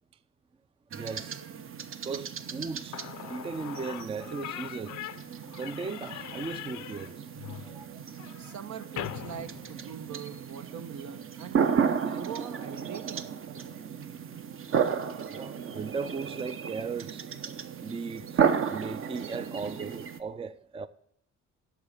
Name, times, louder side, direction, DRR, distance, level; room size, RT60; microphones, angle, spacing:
voice 1, 0.9-1.6 2.0-5.0 5.6-8.0 15.3-17.3 17.8-18.4 18.7-20.9, right 4 dB, 20° right, 0.4 m, -37 dB
sound 1, 0.9-20.2, right 7 dB, 45° right, 0.8 m, -33 dB
Slam / Squeak, 2.6-2.7 2.9-10.4, left 13 dB, 75° left, 0.6 m, -42 dB
voice 2, 8.4-11.6 12.0-13.3, right 8 dB, 70° right, 1.0 m, -42 dB
11.0 x 6.3 x 6.6 m
cardioid pair, 90°, 30 cm